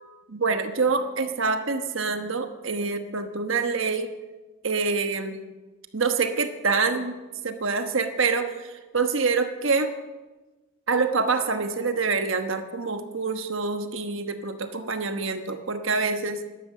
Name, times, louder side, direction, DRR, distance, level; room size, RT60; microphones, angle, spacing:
voice 1, 0.0-4.1 4.6-5.4 5.9-7.2 7.4-9.9 10.9-16.4, right 4 dB, 65° right, 7 dB, 1.2 m, -26 dB
12.5 x 12.0 x 6.7 m, 1.2 s
head